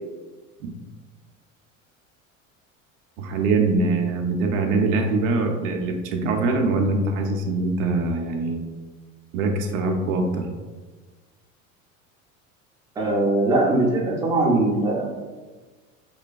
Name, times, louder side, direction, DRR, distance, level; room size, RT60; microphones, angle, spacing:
voice 1, 3.2-8.6 9.3-10.5, right 3 dB, 65° right, 3 dB, 0.5 m, -23 dB
voice 2, 13.0-15.1, right 2 dB, 10° right, -3 dB, 0.4 m, -21 dB
3.0 x 2.2 x 2.3 m, 1.3 s
hypercardioid pair, 75°, 42 cm